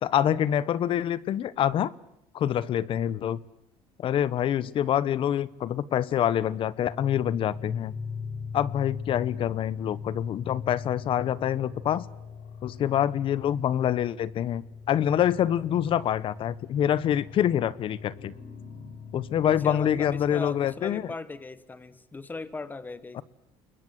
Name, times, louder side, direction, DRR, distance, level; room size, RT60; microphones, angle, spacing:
voice 1, 0.0-1.9 2.3-3.4 4.0-7.9 8.5-12.0 12.6-14.6 14.9-18.3 19.1-21.0 23.1-23.2, left 10 dB, 45° left, 19 dB, 0.9 m, -26 dB
sound 1, 6.4-20.9, left 6 dB, 75° left, 7.7 m, -41 dB
voice 2, 19.4-23.2, left 3 dB, 15° left, 14 dB, 1.5 m, -38 dB
29.0 x 21.5 x 8.0 m, 0.80 s
cardioid pair, 140°, 12 cm